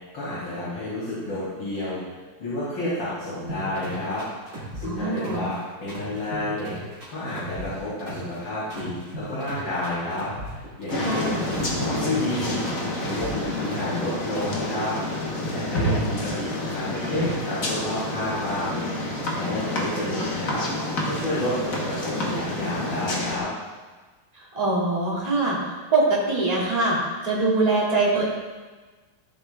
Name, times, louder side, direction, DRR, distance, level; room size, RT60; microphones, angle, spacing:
voice 1, 0.1-2.0 2.4-4.2 4.7-6.7 7.1-10.3 10.5-11.4 11.8-12.6 13.0-14.9 15.5-20.6 21.0-23.5, left 1 dB, 75° left, -10 dB, 3.2 m, -30 dB
sound 1, 3.5-5.6 5.9-8.4 8.7-11.2 11.5-14.0 14.3-14.7, equal, 55° right, 3.2 m, -37 dB
voice 2, 4.8-5.4 11.0-11.4 24.5-25.6 25.9-27.0 27.2-28.2, right 2 dB, 20° right, -6 dB, 2.2 m, -23 dB
sound 2, 10.9-23.4, left 1 dB, 50° left, 1.6 m, -28 dB
14.0 x 5.3 x 3.4 m, 1.3 s
omnidirectional pair, 2.0 m